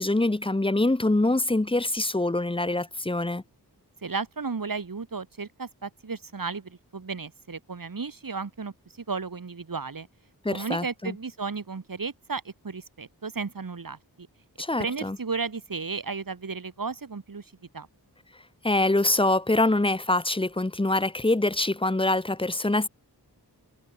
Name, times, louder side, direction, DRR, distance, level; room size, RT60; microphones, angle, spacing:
voice 1, 0.0-3.4 10.4-11.1 14.6-15.2 18.6-22.9, left 2 dB, 15° left, 1.2 m, -24 dB
voice 2, 4.0-8.7 9.1-10.1 10.5-14.3 14.8-17.9, right 4 dB, 55° right, 5.9 m, -34 dB
wide cardioid pair, 100°, 39 cm